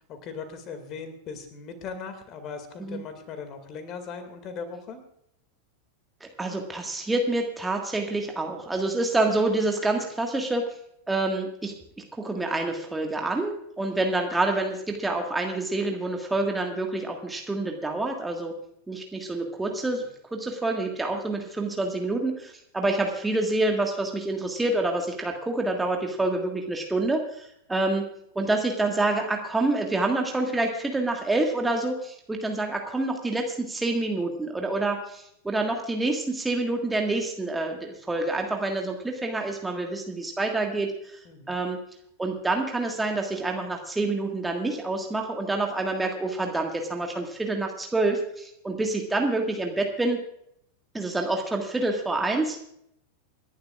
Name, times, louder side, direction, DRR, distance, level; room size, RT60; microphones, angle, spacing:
voice 1, 0.1-5.0 41.3-41.6, left 5 dB, 35° left, 8 dB, 2.2 m, -39 dB
voice 2, 6.2-10.6 11.1-11.7 12.1-18.5 18.9-20.0 20.3-28.1 28.3-41.2 41.5-41.8 42.2-50.2 50.9-52.6, right 2 dB, 10° right, 2 dB, 1.7 m, -27 dB
28.0 x 11.0 x 2.4 m, 0.73 s
figure-of-eight pair, 90°, 0 cm